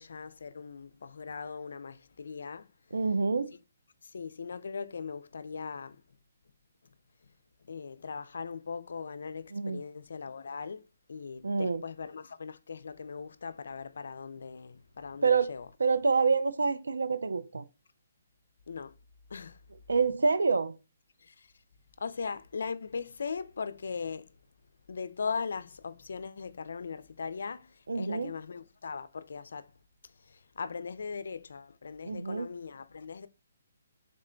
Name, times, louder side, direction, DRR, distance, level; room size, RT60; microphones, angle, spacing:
voice 1, 0.0-2.7 4.0-6.0 7.6-15.7 18.7-19.0 19.3-19.6 21.2-21.5 22.0-24.3 24.9-29.7 30.0-33.3, left 5 dB, 70° left, 0.3 m, -39 dB
voice 2, 2.9-3.5 9.5-9.8 11.4-11.8 15.2-15.5 15.8-17.6 19.9-20.8 27.9-28.3 32.0-32.5, right 4 dB, 90° right, 0.3 m, -27 dB
3.6 x 2.1 x 3.7 m
hypercardioid pair, 150°, 0 cm